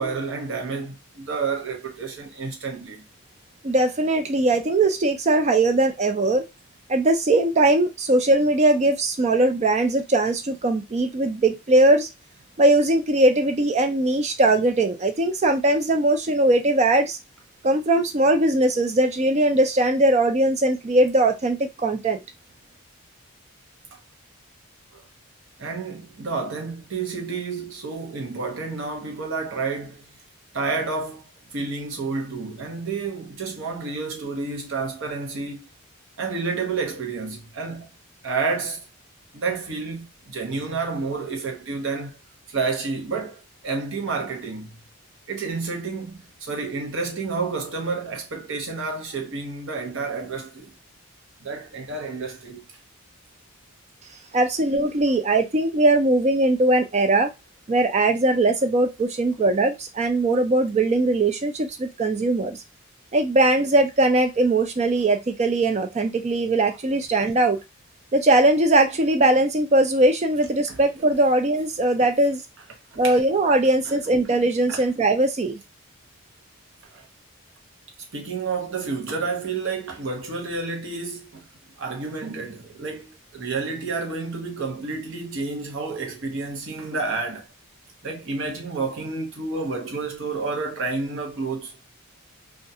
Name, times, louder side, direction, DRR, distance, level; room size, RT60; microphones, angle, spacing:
voice 1, 0.0-3.0 23.9-24.0 24.9-25.0 25.6-30.1 30.5-31.2 31.5-35.7 36.2-37.9 38.2-38.8 39.3-42.2 42.5-44.8 45.3-50.7 51.4-52.7 70.7-70.8 72.6-72.7 73.0-73.2 73.8-74.1 74.7-74.9 76.8-77.0 78.1-81.5 81.8-87.5 88.0-91.7, right 4 dB, 60° right, 0.8 m, -30 dB
voice 2, 3.6-6.4 6.9-12.1 12.6-17.2 17.6-22.2 54.3-57.3 57.7-62.6 63.1-67.6 68.1-72.4 73.0-75.6, right 2 dB, 30° right, 0.4 m, -20 dB
2.3 x 2.1 x 2.7 m
head